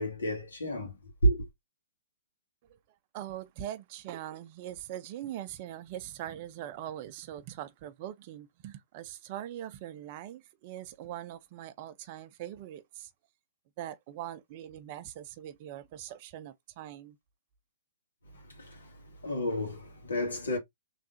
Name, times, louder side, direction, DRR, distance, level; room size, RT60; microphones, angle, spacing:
voice 1, 0.0-1.5 18.3-20.6, right 1 dB, 75° left, 2.0 m, -31 dB
voice 2, 3.1-13.1 13.8-17.2, right 12 dB, 40° right, 0.5 m, -42 dB
3.6 x 3.2 x 2.6 m
figure-of-eight pair, 120°, 0 cm